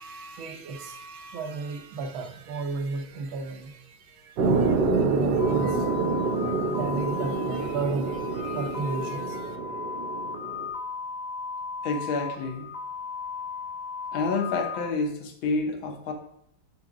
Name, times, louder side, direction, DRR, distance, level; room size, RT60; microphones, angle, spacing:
voice 1, 0.0-9.6, right 4 dB, 85° right, 6 dB, 1.5 m, -34 dB
sound 1, 4.4-10.7, right 4 dB, 65° right, 1.3 m, -27 dB
sound 2, 5.4-14.9, left 5 dB, 60° left, 0.6 m, -36 dB
voice 2, 11.8-12.7 14.1-16.1, left 3 dB, 85° left, 5 dB, 1.7 m, -28 dB
5.0 x 4.0 x 4.8 m, 0.73 s
omnidirectional pair, 2.1 m